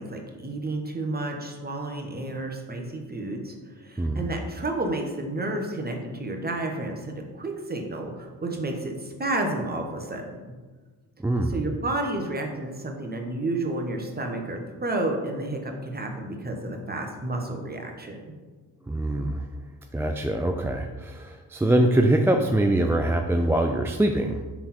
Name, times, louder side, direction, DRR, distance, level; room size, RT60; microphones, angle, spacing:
voice 1, 0.0-10.5 11.5-18.2, right 2 dB, 20° right, 2 dB, 1.2 m, -31 dB
voice 2, 4.0-4.3 11.2-11.6 18.9-19.5 19.9-24.4, right 1 dB, 5° right, 3 dB, 0.3 m, -23 dB
5.8 x 3.7 x 4.4 m, 1.3 s
supercardioid pair, 55°, 42 cm